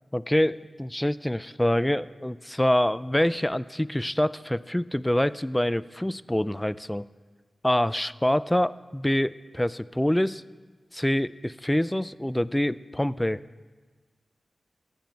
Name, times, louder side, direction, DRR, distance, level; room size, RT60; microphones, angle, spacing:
voice 1, 0.1-7.1 7.6-10.4 10.9-13.4, left 1 dB, 10° left, 18 dB, 0.3 m, -26 dB
14.5 x 9.2 x 4.5 m, 1.4 s
cardioid pair, 45°, 0 cm